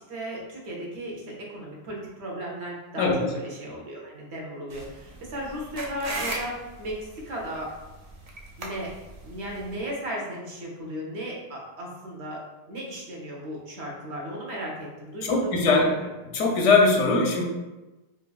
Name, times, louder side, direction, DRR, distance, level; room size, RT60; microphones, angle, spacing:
voice 1, 0.0-7.7 8.6-8.9 9.2-12.4 12.7-15.6 15.9-16.1, equal, 65° right, -2 dB, 1.1 m, -35 dB
voice 2, 3.0-3.3 15.2-15.9 16.3-17.4, left 3 dB, 85° left, 1 dB, 1.0 m, -21 dB
sound 1, 4.7-9.8, right 2 dB, 50° right, 0.5 m, -38 dB
4.4 x 2.6 x 2.3 m, 1.1 s
omnidirectional pair, 1.2 m